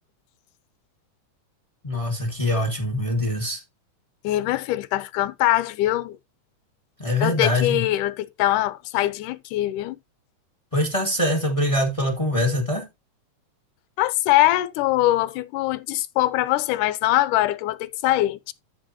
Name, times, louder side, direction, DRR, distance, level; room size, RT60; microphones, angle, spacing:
voice 1, 1.8-3.6 7.0-7.8 10.7-12.9, left 1 dB, 15° left, 1.1 m, -23 dB
voice 2, 4.2-6.2 7.2-10.0 14.0-18.5, left 15 dB, 80° left, 2.2 m, -22 dB
12.5 x 6.1 x 2.8 m
omnidirectional pair, 3.7 m